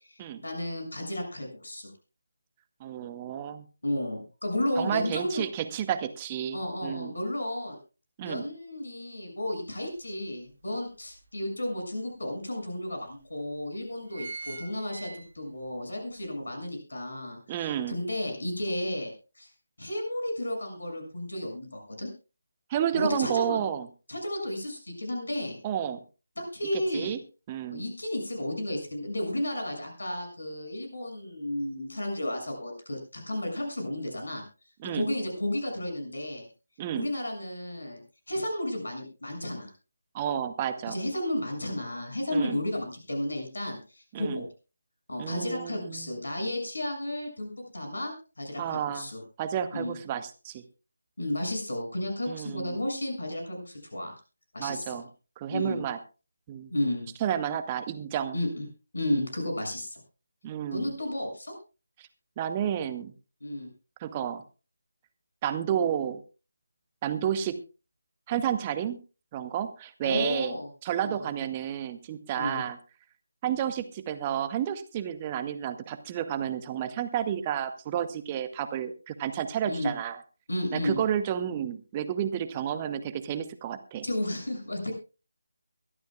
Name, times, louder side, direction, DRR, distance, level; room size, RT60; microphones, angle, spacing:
voice 1, 0.1-1.9 3.8-5.4 6.5-7.8 8.2-19.1 19.4-19.5 19.8-22.1 22.9-23.6 24.1-25.6 26.4-27.1 27.7-34.4 34.9-36.5 36.9-38.0 38.3-39.7 40.9-44.5 45.1-49.2 49.7-49.9 51.2-54.1 54.5-55.0 55.5-55.8 56.7-57.1 58.3-58.6 58.9-60.0 60.7-61.5 63.4-63.7 70.0-70.7 71.0-71.3 72.3-72.6 79.6-79.9 80.5-81.0 84.0-84.9, left 1 dB, 60° left, 3 dB, 6.8 m, -33 dB
voice 2, 2.8-3.7 4.8-7.1 8.2-8.4 17.5-18.0 22.7-23.9 25.6-26.0 26.7-27.2 27.5-27.8 34.8-35.1 36.8-37.1 40.1-40.9 42.3-42.6 44.1-44.4 45.2-46.1 48.6-49.1 49.4-50.6 52.3-52.8 54.6-55.1 55.4-56.0 56.5-56.7 57.2-58.4 60.4-60.9 62.0-62.1 62.4-63.1 64.0-64.4 65.4-66.2 67.0-67.6 68.3-69.0 69.3-70.6 70.8-72.8 73.4-80.2 80.7-84.0, right 9 dB, 20° right, 10 dB, 1.0 m, -31 dB
sound 1, 9.9-10.0 10.5-11.6 12.3-12.4 12.6-12.7 13.4-13.6 13.9-15.7 16.1-16.2, right 3 dB, 45° right, 2.1 m, -42 dB
23.0 x 12.5 x 2.4 m, 0.32 s
figure-of-eight pair, 155°, 0 cm